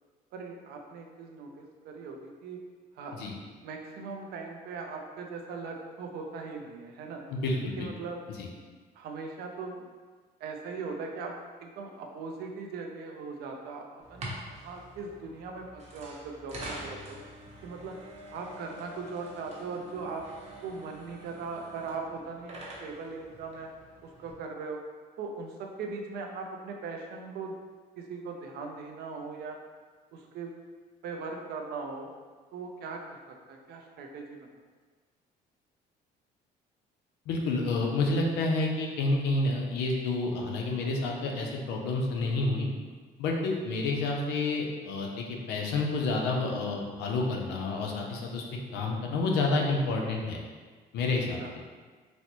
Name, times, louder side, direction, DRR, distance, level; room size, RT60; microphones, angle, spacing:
voice 1, 0.3-2.6 3.0-3.2 3.6-7.2 7.8-8.2 9.0-9.9 10.4-17.2 17.6-18.0 18.3-20.3 20.6-23.7 24.0-24.8 25.2-27.6 28.0-29.6 30.1-30.5 31.0-32.1 32.5-34.5 51.4-51.5, right 4 dB, 70° right, 2 dB, 0.5 m, -39 dB
voice 2, 7.3-7.9 8.4-8.5 37.3-42.7 43.2-48.4 48.7-50.4 50.9-51.6, left 2 dB, 90° left, 0 dB, 0.6 m, -29 dB
sound 1, 14.0-24.3, right 1 dB, 40° right, 0.8 m, -46 dB
4.1 x 2.1 x 2.9 m, 1.4 s
cardioid pair, 110°, 17 cm